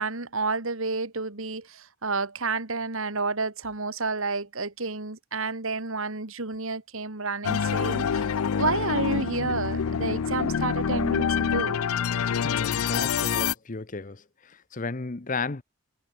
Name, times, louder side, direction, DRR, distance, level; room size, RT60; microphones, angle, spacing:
voice 1, 0.0-8.2 8.6-11.8, right 3 dB, 75° right, 2.4 m, -30 dB
sound 1, 7.4-13.5, left 7 dB, 90° left, 0.5 m, -26 dB
voice 2, 12.3-15.6, left 4 dB, 35° left, 0.8 m, -34 dB
head